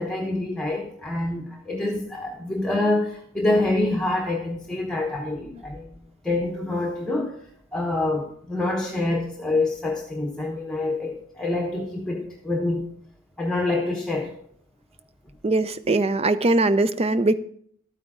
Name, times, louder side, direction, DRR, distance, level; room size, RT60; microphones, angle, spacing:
voice 1, 0.0-6.0 6.2-7.4 7.7-12.8 13.4-14.3, left 2 dB, 5° left, 1 dB, 1.1 m, -26 dB
voice 2, 15.4-17.4, right 2 dB, 30° right, 14 dB, 0.5 m, -21 dB
12.0 x 9.1 x 3.7 m, 0.65 s
head